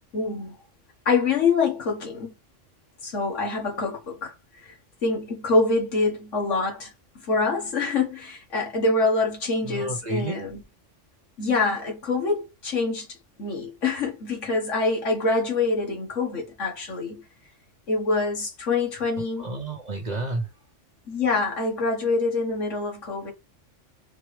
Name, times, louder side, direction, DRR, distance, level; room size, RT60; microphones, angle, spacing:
voice 1, 0.1-0.6 1.0-2.3 3.0-4.7 5.0-6.9 7.2-10.6 11.4-13.1 13.4-17.2 17.9-19.5 21.1-23.3, left 3 dB, 80° left, 1.7 m, -25 dB
voice 2, 9.6-10.4 19.4-20.5, right 2 dB, 40° right, 1.0 m, -30 dB
4.2 x 3.1 x 3.2 m
omnidirectional pair, 1.3 m